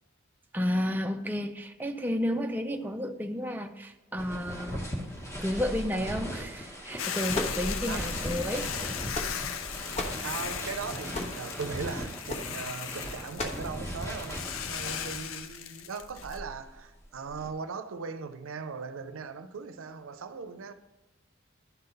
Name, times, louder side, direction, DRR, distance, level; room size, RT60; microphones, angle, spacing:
voice 1, 0.5-4.9 5.4-9.0, equal, 10° right, 0.4 m, -32 dB
sound 1, 4.2-15.4 16.0-17.5, equal, 15° left, 1.2 m, -38 dB
Hiss / Boiling, 7.0-16.4, left 8 dB, 85° left, 0.5 m, -37 dB
sound 2, 7.3-8.1 8.8-9.6 9.9-10.3 11.1-11.5 12.3-12.5 13.4-13.7, left 2 dB, 35° left, 1.2 m, -35 dB
voice 2, 10.2-20.7, right 5 dB, 90° right, 0.5 m, -39 dB
11.0 x 3.8 x 5.5 m
head